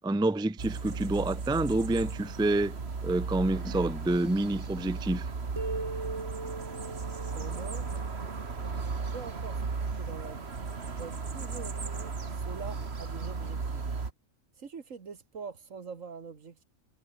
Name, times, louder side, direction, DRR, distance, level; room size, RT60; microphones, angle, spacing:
voice 1, 0.0-2.8 3.0-5.3, right 2 dB, 5° right, 0.5 m, -28 dB
sound 1, 0.6-14.1, right 4 dB, 50° right, 2.1 m, -36 dB
sound 2, 5.6-9.1, right 3 dB, 20° right, 1.4 m, -40 dB
voice 2, 7.3-7.9 8.8-10.6 10.9-13.9 14.6-16.6, right 5 dB, 75° right, 2.1 m, -44 dB
omnidirectional pair, 1.4 m